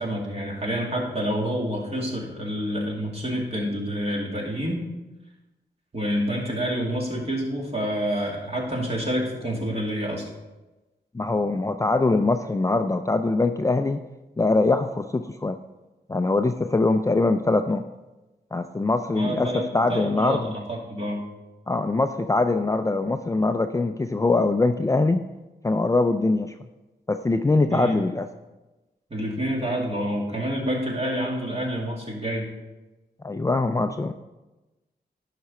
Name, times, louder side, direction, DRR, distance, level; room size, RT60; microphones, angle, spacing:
voice 1, 0.0-4.8 5.9-10.3 19.1-20.4 20.7-21.2 27.7-27.9 29.1-32.5, equal, 35° right, -2 dB, 2.5 m, -28 dB
voice 2, 11.1-14.0 14.4-15.6 16.1-17.8 18.5-20.5 21.7-25.2 25.6-26.5 27.1-28.3 33.2-34.1, left 3 dB, 20° left, 7 dB, 0.4 m, -23 dB
10.5 x 5.8 x 4.3 m, 1.1 s
wide cardioid pair, 75°, 18 cm